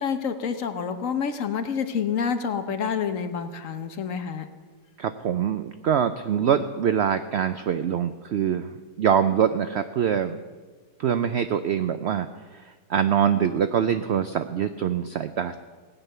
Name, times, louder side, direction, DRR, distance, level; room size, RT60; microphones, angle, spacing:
voice 1, 0.0-4.5, left 6 dB, 55° left, 8 dB, 1.2 m, -28 dB
voice 2, 5.0-8.7 9.0-10.4 11.0-12.3 12.5-12.6 12.9-15.6, right 8 dB, 85° right, 10 dB, 0.5 m, -24 dB
17.0 x 9.2 x 6.7 m, 1.4 s
omnidirectional pair, 1.7 m